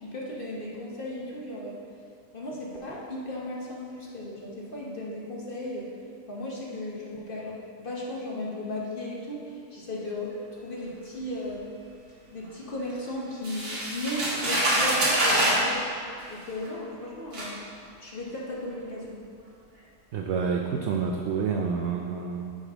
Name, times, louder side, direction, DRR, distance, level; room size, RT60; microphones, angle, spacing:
voice 1, 0.0-1.8 2.3-5.9 6.3-11.6 12.3-15.9 16.3-17.6 18.0-19.2, left 1 dB, 40° left, -4 dB, 1.0 m, -36 dB
sound 1, 13.4-15.7 16.6-16.7 17.3-17.5, right 1 dB, 50° right, 1.7 m, -25 dB
voice 2, 20.1-22.5, right 5 dB, 75° right, 2 dB, 0.6 m, -28 dB
9.7 x 5.1 x 3.6 m, 2.3 s
omnidirectional pair, 1.7 m